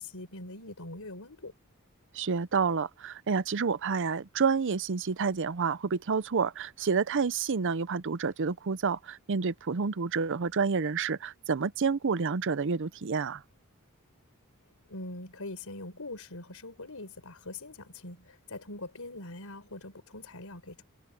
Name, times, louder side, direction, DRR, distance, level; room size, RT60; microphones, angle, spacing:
voice 1, 0.0-1.5 14.9-20.8, left 2 dB, 80° left, 4.4 m, -43 dB
voice 2, 2.1-13.4, right 5 dB, 60° right, 0.6 m, -29 dB
head